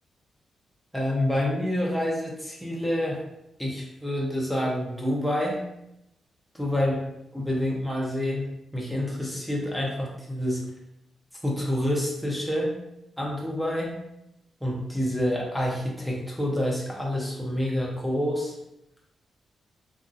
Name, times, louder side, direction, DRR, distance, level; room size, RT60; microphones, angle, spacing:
voice 1, 0.9-3.2 3.6-5.6 6.5-7.0 7.3-8.5 8.7-10.6 11.4-12.7 13.2-14.0 14.6-18.5, left 1 dB, ahead, -3 dB, 0.6 m, -27 dB
2.8 x 2.5 x 2.4 m, 0.83 s
cardioid pair, 115°, 0 cm